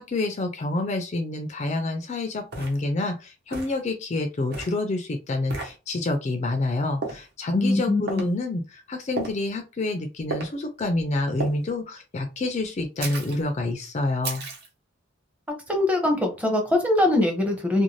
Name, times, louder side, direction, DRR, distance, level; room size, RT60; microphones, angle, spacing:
voice 1, 0.0-14.4, left 2 dB, 35° left, 5 dB, 0.3 m, -28 dB
sound 1, 1.8-1.9 2.5-2.8 3.5-3.8 4.5-4.8 5.5-5.7 7.0-7.3 8.1-8.3 9.2-9.5 10.3-10.5 11.4-11.6 13.0-13.4 14.2-14.7, right 3 dB, 50° right, 0.9 m, -33 dB
voice 2, 7.6-8.0 15.7-17.8, left 1 dB, 5° right, 3 dB, 0.6 m, -22 dB
2.5 x 2.2 x 3.1 m, 0.30 s
head